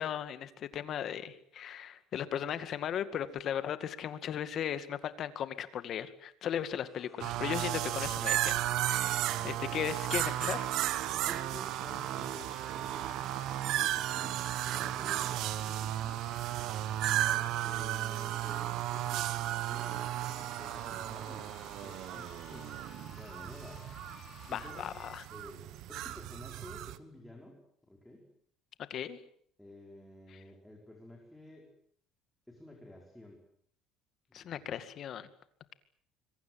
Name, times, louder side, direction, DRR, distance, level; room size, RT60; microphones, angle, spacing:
voice 1, 0.0-8.5 8.8-10.7 24.5-25.3 28.9-29.2 34.3-35.3, left 9 dB, 45° left, 12 dB, 2.1 m, -37 dB
sound 1, 6.6-25.2, left 5 dB, 25° left, 5.4 m, -55 dB
sound 2, 7.2-27.0, right 13 dB, 65° right, 1.4 m, -34 dB
voice 2, 9.2-9.8 11.2-13.7 14.1-16.3 17.2-23.8 24.5-24.9 25.3-28.2 29.6-31.7 32.5-33.4 34.3-34.7, left 1 dB, 5° left, 0 dB, 5.0 m, -51 dB
26.0 x 23.5 x 7.8 m, 0.62 s
cardioid pair, 140°, 0 cm